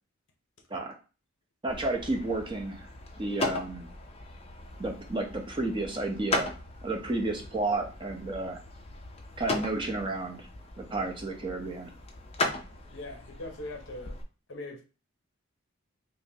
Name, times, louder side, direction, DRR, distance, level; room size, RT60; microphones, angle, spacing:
voice 1, 1.6-2.9 3.2-3.9 4.8-6.5 6.8-8.6 9.4-10.5 10.8-11.9, right 2 dB, 25° right, 2 dB, 0.6 m, -31 dB
sound 1, 1.7-14.2, left 2 dB, 30° left, 0.5 m, -38 dB
voice 2, 12.9-14.2 14.5-14.8, left 2 dB, 60° left, 2 dB, 0.8 m, -41 dB
5.1 x 2.1 x 2.7 m, 0.33 s
head